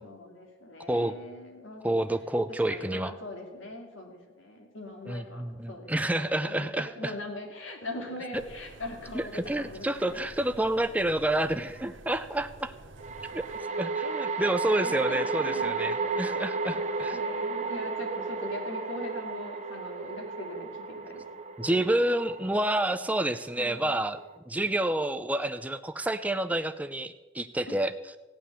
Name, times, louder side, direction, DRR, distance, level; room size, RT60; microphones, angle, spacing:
voice 1, 0.0-2.0 2.5-10.2 14.8-15.8 16.7-21.3 23.6-24.0 27.7-27.8, left 1 dB, 85° left, 3 dB, 2.5 m, -41 dB
voice 2, 1.8-3.1 5.1-7.1 9.1-12.7 13.3-13.4 13.8-17.2 21.6-27.9, right 1 dB, 10° right, 10 dB, 0.5 m, -29 dB
sound 1, 8.3-13.6, right 2 dB, 75° right, 1.0 m, -49 dB
sound 2, 10.0-10.1 13.0-24.4, right 4 dB, 35° right, 0.9 m, -33 dB
15.0 x 9.5 x 6.8 m, 1.2 s
head